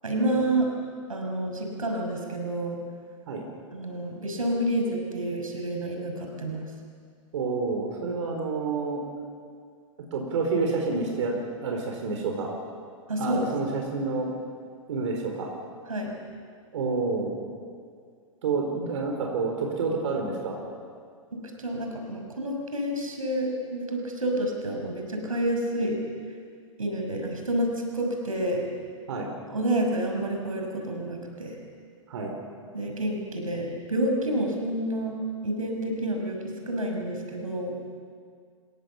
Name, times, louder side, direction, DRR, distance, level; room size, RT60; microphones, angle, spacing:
voice 1, 0.0-0.7 1.1-2.8 3.7-6.6 13.1-13.5 15.9-16.1 21.6-26.0 26.8-28.6 29.5-31.5 32.7-35.2 35.4-37.7, right 1 dB, 90° right, 1 dB, 5.7 m, -29 dB
voice 2, 7.3-9.0 10.1-11.3 11.6-12.5 13.2-14.3 14.9-15.5 16.7-17.4 18.4-20.6 29.1-29.3 32.1-32.3, right 4 dB, 60° right, 1 dB, 4.7 m, -28 dB
28.5 x 17.0 x 7.3 m, 2.1 s
hypercardioid pair, 115°, 17 cm